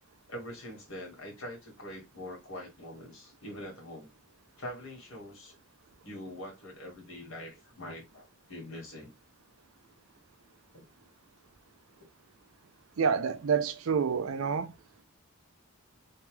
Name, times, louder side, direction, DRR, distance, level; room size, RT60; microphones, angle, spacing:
voice 1, 0.3-4.1 4.6-5.5 6.0-9.1 10.7-10.9 12.0-12.1, left 1 dB, 70° left, 1.4 m, -44 dB
voice 2, 13.0-14.7, right 6 dB, 75° right, 0.5 m, -28 dB
2.9 x 2.2 x 3.0 m
head